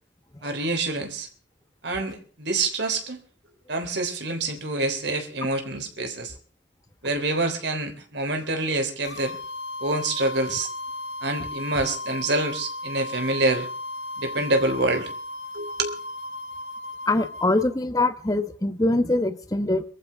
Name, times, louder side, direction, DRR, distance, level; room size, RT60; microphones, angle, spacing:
voice 1, 0.4-1.3 1.8-3.2 3.7-6.3 7.0-9.3 9.8-10.7 11.2-13.7 14.2-15.1 15.5-16.0, right 2 dB, 65° right, 5 dB, 3.5 m, -26 dB
sound 1, 9.0-17.7, left 2 dB, 65° left, 2.4 m, -35 dB
voice 2, 17.1-19.8, left 2 dB, 20° left, 10 dB, 1.1 m, -23 dB
23.5 x 14.5 x 3.5 m, 0.42 s
head